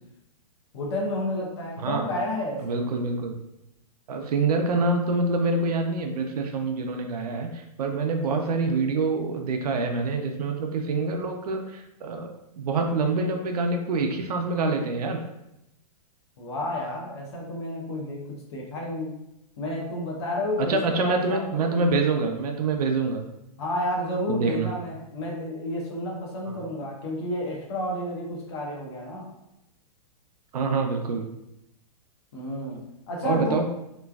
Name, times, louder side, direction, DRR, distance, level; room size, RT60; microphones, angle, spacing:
voice 1, 0.7-2.8 16.4-19.2 19.6-21.9 23.6-29.3 32.3-33.6, left 1 dB, 40° left, -1 dB, 0.7 m, -31 dB
voice 2, 2.6-3.3 4.1-12.3 12.6-15.2 20.6-23.2 24.3-24.7 26.5-26.6 30.5-31.3 33.2-33.7, right 3 dB, 70° right, 4 dB, 0.5 m, -26 dB
3.0 x 2.4 x 2.3 m, 0.87 s
hypercardioid pair, 175°, 20 cm